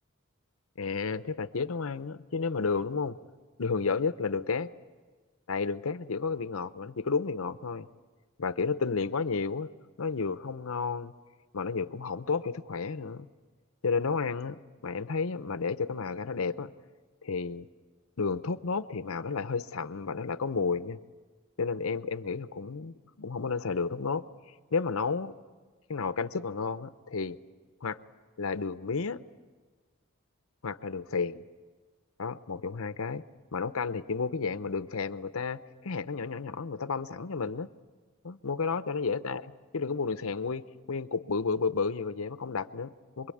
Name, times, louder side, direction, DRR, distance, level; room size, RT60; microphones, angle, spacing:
voice 1, 0.8-3.2 3.6-4.7 5.5-7.9 8.4-9.7 10.0-11.1 11.5-13.3 13.8-16.7 17.2-17.7 18.2-21.0 21.6-24.3 24.7-25.4 25.9-27.4 27.8-28.0 28.4-29.2 30.6-31.4 32.2-33.2 33.5-37.7 38.2-43.3, left 4 dB, 85° left, 13 dB, 0.8 m, -32 dB
27.0 x 22.0 x 8.6 m, 1.4 s
head